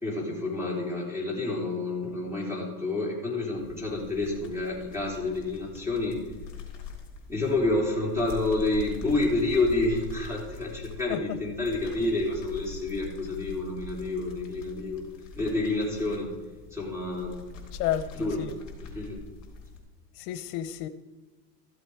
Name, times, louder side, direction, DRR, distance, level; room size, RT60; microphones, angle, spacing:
voice 1, 0.0-6.2 7.3-15.0 15.4-16.3 16.7-17.4 18.1-18.4 18.8-19.2, left 2 dB, 5° right, -2 dB, 3.2 m, -29 dB
sound 1, 3.6-19.8, left 5 dB, 35° left, 3.8 m, -43 dB
voice 2, 17.8-18.5 20.2-20.9, left 11 dB, 70° left, 11 dB, 0.8 m, -31 dB
14.0 x 7.7 x 4.7 m, 1.3 s
supercardioid pair, 135°, 48 cm